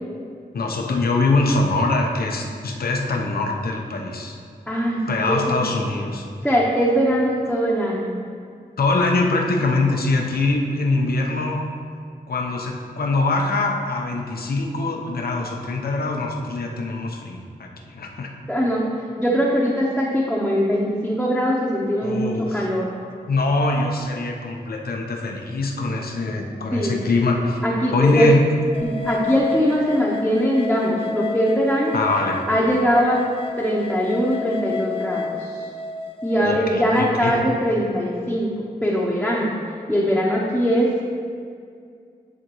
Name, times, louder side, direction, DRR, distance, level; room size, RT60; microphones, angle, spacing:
voice 1, 0.5-4.4 5.1-6.3 8.8-11.6 12.3-18.3 22.0-22.7 23.2-27.6 27.9-28.4 31.9-32.5 36.4-37.3, left 3 dB, 70° left, 1 dB, 0.8 m, -23 dB
voice 2, 4.7-5.6 6.4-8.1 18.5-18.8 19.2-22.9 26.7-26.9 27.6-28.3 28.8-31.9 32.5-33.2 33.6-35.3 36.2-39.5 39.9-41.0, equal, ahead, -6 dB, 1.0 m, -21 dB
sound 1, 28.7-36.4, left 4 dB, 35° left, 0.6 m, -31 dB
10.5 x 3.6 x 3.1 m, 2.3 s
cardioid pair, 45°, 16 cm